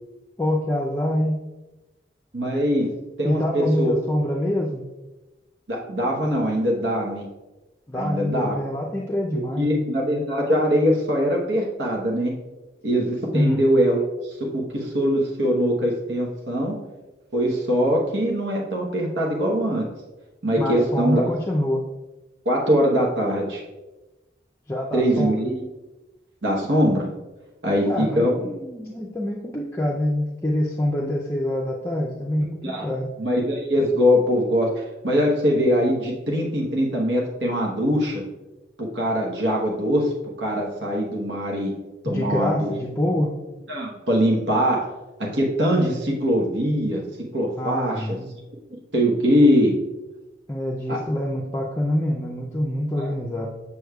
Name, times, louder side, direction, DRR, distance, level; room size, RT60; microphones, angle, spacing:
voice 1, 0.4-1.4 3.2-4.8 7.9-9.9 13.3-13.6 20.6-21.8 24.7-25.5 27.9-33.1 42.1-43.3 47.6-48.3 50.5-53.5, left 1 dB, 15° left, -3 dB, 0.4 m, -25 dB
voice 2, 2.3-2.9 3.2-4.0 5.7-7.2 7.9-8.5 9.3-12.3 12.8-16.7 17.3-19.9 20.4-21.3 22.4-23.6 24.9-25.6 26.4-27.1 27.6-28.5 32.6-32.9 33.2-38.2 38.8-40.1 40.4-41.7 42.0-42.7 43.7-44.9 45.3-47.0 47.3-48.2 48.9-49.7 50.9-51.0 53.0-53.1, equal, 85° right, -1 dB, 1.0 m, -22 dB
7.0 x 6.4 x 2.3 m, 1.1 s
head